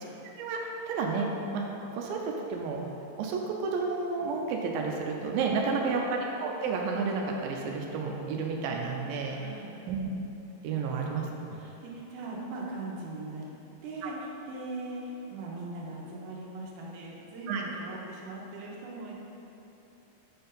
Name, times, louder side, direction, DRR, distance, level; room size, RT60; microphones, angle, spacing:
voice 1, 0.9-1.3 1.5-1.7 1.9-2.2 2.5-2.8 3.2-9.4 9.9-10.0 10.6-11.3 14.0-14.1 17.5-17.6, right 4 dB, 90° right, 0 dB, 2.4 m, -31 dB
voice 2, 5.4-6.0 9.3-9.8 10.6-13.4 13.8-15.0 15.3-19.1, right 2 dB, 70° right, -4 dB, 2.3 m, -40 dB
7.5 x 4.4 x 5.2 m, 3.0 s
omnidirectional pair, 4.1 m